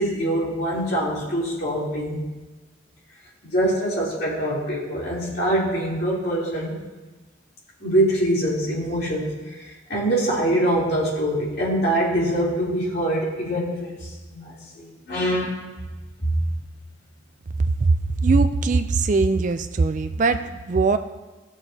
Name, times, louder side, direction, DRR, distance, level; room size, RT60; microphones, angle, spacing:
voice 1, 0.0-2.2 3.4-6.8 7.8-15.6 16.2-16.3, right 1 dB, 50° left, -6 dB, 3.1 m, -24 dB
voice 2, 18.2-21.0, right 3 dB, 40° right, 9 dB, 0.4 m, -20 dB
17.0 x 7.0 x 2.8 m, 1.2 s
head